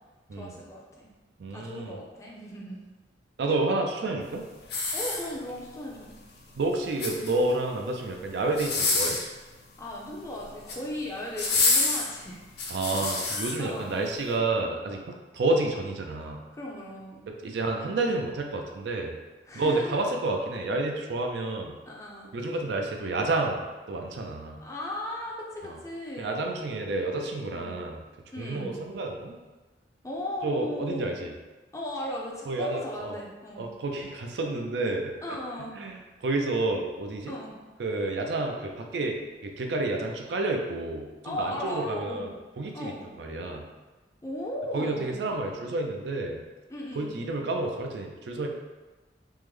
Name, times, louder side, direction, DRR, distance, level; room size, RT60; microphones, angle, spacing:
voice 1, 0.4-1.1 1.5-2.8 4.9-6.2 9.8-12.4 12.9-13.0 13.6-13.9 16.5-17.2 19.5-20.0 21.8-22.3 24.6-26.4 27.5-27.8 28.3-28.8 30.0-31.1 31.7-33.6 35.2-35.8 36.6-36.7 37.3-37.5 41.2-42.2 42.7-43.0 44.2-45.2 46.7-47.1, left 1 dB, 15° left, -3 dB, 0.5 m, -37 dB
voice 2, 1.4-2.0 3.4-4.4 6.6-9.2 12.7-16.4 17.3-19.1 19.5-21.8 22.3-24.6 25.7-25.8 26.2-28.0 28.4-29.4 30.4-31.3 32.5-33.1 33.6-35.1 35.8-37.3 37.8-42.3 42.6-43.6 44.7-46.4 47.0-48.5, right 2 dB, 65° right, 2 dB, 0.4 m, -30 dB
sound 1, 4.6-5.7 6.8-7.6 8.5-9.3 10.4-10.8 11.4-13.5 14.1-14.3, left 3 dB, 60° left, 0.6 m, -27 dB
3.6 x 2.1 x 3.1 m, 1.2 s
head